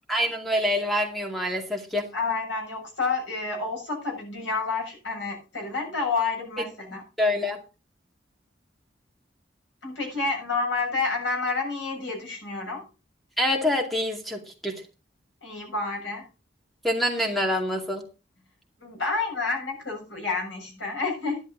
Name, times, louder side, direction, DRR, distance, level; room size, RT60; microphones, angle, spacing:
voice 1, 0.1-2.1 7.2-7.6 13.4-14.8 16.8-18.0, left 1 dB, ahead, 2 dB, 2.3 m, -26 dB
voice 2, 2.1-7.0 9.8-12.8 15.4-16.2 18.8-21.4, left 4 dB, 90° left, 0 dB, 6.9 m, -29 dB
11.5 x 11.0 x 4.0 m, 0.32 s
head